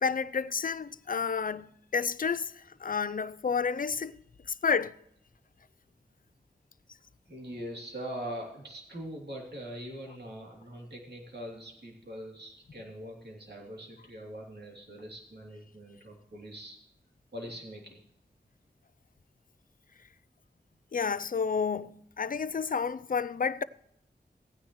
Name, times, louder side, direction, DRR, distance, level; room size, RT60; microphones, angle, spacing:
voice 1, 0.0-4.1 4.6-4.9 20.9-23.6, left 5 dB, 50° left, 0.5 m, -30 dB
voice 2, 7.3-16.8 17.3-18.0, equal, 65° right, 3.0 m, -42 dB
16.0 x 9.7 x 3.1 m
wide cardioid pair, 50°, 18 cm